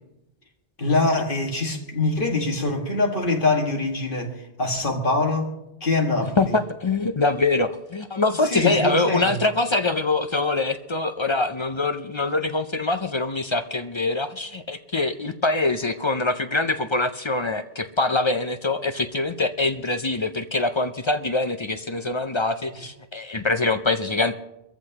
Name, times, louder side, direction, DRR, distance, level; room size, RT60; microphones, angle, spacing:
voice 1, 0.8-6.5 8.4-9.4, left 2 dB, 55° left, 2 dB, 2.1 m, -24 dB
voice 2, 6.4-24.4, left 3 dB, 35° left, 9 dB, 0.5 m, -24 dB
23.5 x 14.5 x 2.9 m, 0.90 s
omnidirectional pair, 1.1 m